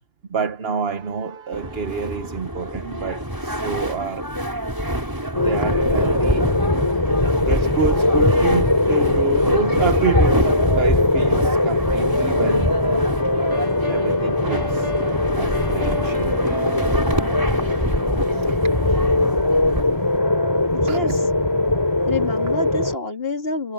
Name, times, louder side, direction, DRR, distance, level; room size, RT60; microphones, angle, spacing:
voice 1, 0.3-4.3 5.3-7.1 7.5-13.0 13.9-14.9 15.4-16.4 18.3-18.5 18.9-19.4 20.6-21.3, right 5 dB, 55° right, 1.4 m, -28 dB
sound 1, 1.5-20.2, equal, 15° right, 5.9 m, -27 dB
sound 2, 5.3-22.9, left 2 dB, 20° left, 2.9 m, -20 dB
sound 3, 12.3-19.1, left 2 dB, 80° left, 7.8 m, -36 dB
voice 2, 20.7-21.1 22.1-23.7, left 3 dB, 55° left, 2.8 m, -27 dB
omnidirectional pair, 1.2 m